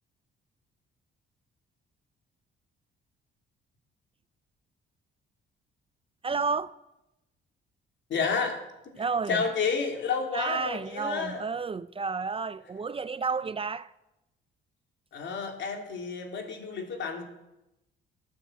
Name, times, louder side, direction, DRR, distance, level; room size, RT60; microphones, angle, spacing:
voice 1, 6.2-6.7 9.0-9.4 10.3-13.9, right 5 dB, 30° right, 0.5 m, -31 dB
voice 2, 8.1-8.6 9.3-11.4 15.1-17.2, left 5 dB, 65° left, 3.1 m, -30 dB
14.0 x 9.5 x 8.0 m
cardioid pair, 90°, 20 cm